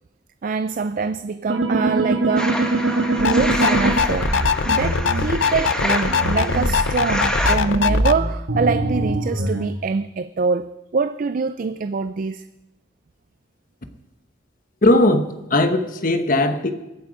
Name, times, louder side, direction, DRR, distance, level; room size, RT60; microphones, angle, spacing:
voice 1, 0.4-4.3 4.6-12.4, right 4 dB, 45° right, 0.4 m, -24 dB
sound 1, 1.5-5.2 6.1-9.6, right 2 dB, 70° right, 1.6 m, -23 dB
sound 2, 2.4-7.6, equal, 5° left, 1.1 m, -27 dB
sound 3, 3.2-8.1, left 6 dB, 70° left, 0.5 m, -22 dB
voice 2, 14.8-16.7, left 1 dB, 45° left, 1.0 m, -18 dB
23.0 x 8.0 x 5.0 m
head